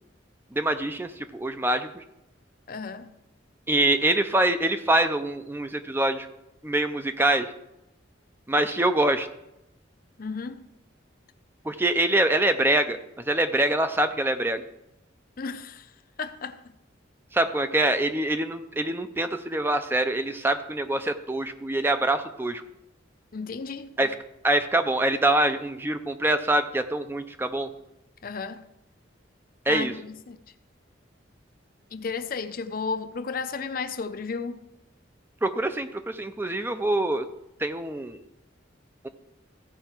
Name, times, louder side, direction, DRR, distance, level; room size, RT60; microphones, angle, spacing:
voice 1, 0.5-2.0 3.7-6.3 6.6-7.5 8.5-9.3 11.6-14.6 17.3-22.6 24.0-24.1 24.4-27.7 29.7-29.9 35.4-37.3 37.6-38.2 39.0-39.1, right 1 dB, 10° right, 0.4 m, -25 dB
voice 2, 2.7-3.1 10.2-10.6 15.4-15.9 16.2-16.6 23.3-23.9 28.2-28.6 29.7-30.4 31.9-34.6, left 4 dB, 50° left, 0.6 m, -33 dB
15.0 x 5.6 x 4.4 m
head